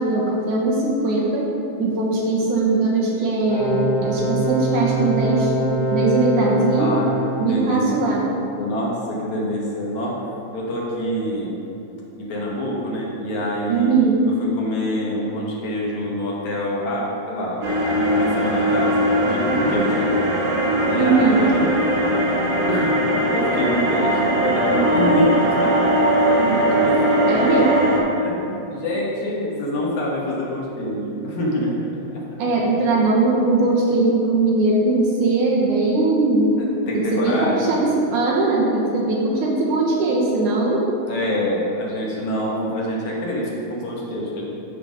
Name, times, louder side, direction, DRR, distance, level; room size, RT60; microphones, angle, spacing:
voice 1, 0.0-1.5 1.8-5.5 5.9-7.0 7.4-8.2 13.7-14.2 21.0-21.4 27.3-27.7 32.4-36.5 36.9-40.8, right 3 dB, 70° right, -4 dB, 2.5 m, -20 dB
sound 1, 3.5-7.4, right 1 dB, 45° left, 1.7 m, -23 dB
voice 2, 6.8-7.1 7.4-7.8 8.6-10.2 10.5-11.6 12.2-14.0 14.4-18.9 19.2-20.2 20.9-21.7 22.6-25.9 26.4-27.5 28.2-31.7 32.1-32.2 36.6-37.8 41.1-44.4, equal, 60° left, -4 dB, 2.5 m, -26 dB
sound 2, 17.6-28.0, right 1 dB, 50° right, 1.6 m, -20 dB
13.0 x 4.5 x 5.1 m, 2.9 s
omnidirectional pair, 3.9 m